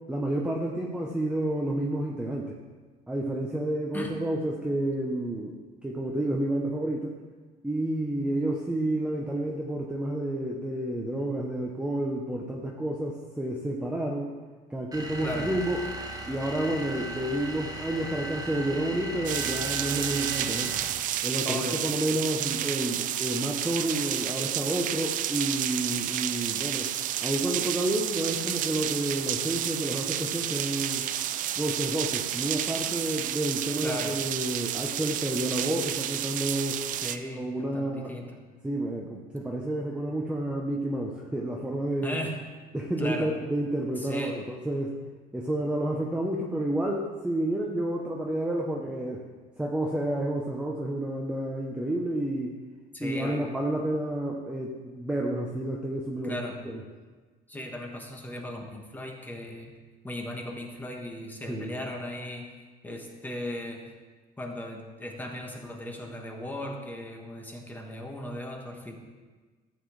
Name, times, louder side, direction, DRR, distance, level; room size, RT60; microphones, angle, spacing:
voice 1, 0.1-2.5 3.1-7.1 7.6-14.3 14.7-15.9 16.3-20.8 21.2-26.9 27.2-31.1 31.6-36.8 37.3-38.1 38.6-42.2 42.7-45.0 45.3-49.2 49.6-52.6 53.0-56.4 56.6-56.8 61.5-61.8, right 1 dB, 5° right, -2 dB, 0.8 m, -30 dB
sound 1, 14.9-21.1, right 1 dB, 20° right, 1.1 m, -37 dB
sound 2, 19.2-37.2, right 11 dB, 55° right, 0.4 m, -31 dB
voice 2, 21.4-21.8 33.8-34.1 36.9-37.5 37.7-38.4 42.0-42.3 43.0-43.3 44.0-44.3 52.9-53.5 56.2-56.5 57.5-59.7 60.0-62.5 62.8-63.8 64.4-68.9, left 1 dB, 10° left, 1 dB, 1.4 m, -37 dB
13.0 x 8.3 x 3.2 m, 1.4 s
cardioid pair, 135°, 17 cm